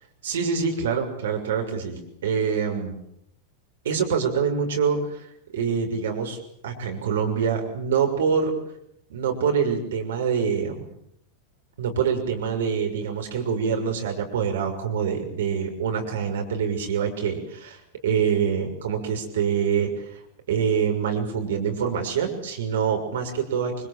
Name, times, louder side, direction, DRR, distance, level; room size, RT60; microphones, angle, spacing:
voice 1, 0.2-3.0 3.8-5.3 5.5-6.4 6.6-8.5 9.1-10.9 11.8-20.2 20.5-23.9, right 6 dB, 60° right, 3 dB, 6.4 m, -25 dB
28.0 x 27.5 x 7.7 m, 0.76 s
figure-of-eight pair, 90°, 0 cm